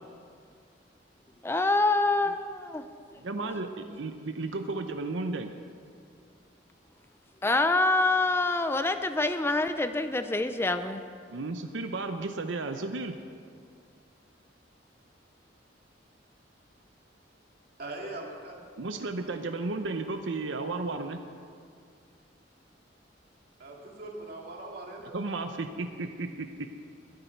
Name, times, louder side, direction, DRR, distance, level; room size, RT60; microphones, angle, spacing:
voice 1, 1.4-2.8 7.4-11.0, left 2 dB, 15° left, 9 dB, 0.4 m, -26 dB
voice 2, 3.2-5.5 11.3-13.1 18.8-21.2 25.1-26.8, right 3 dB, 85° right, 7 dB, 0.7 m, -33 dB
voice 3, 17.8-18.7 23.6-25.1, right 2 dB, 55° right, -1 dB, 2.4 m, -41 dB
21.0 x 10.5 x 4.5 m, 2.2 s
head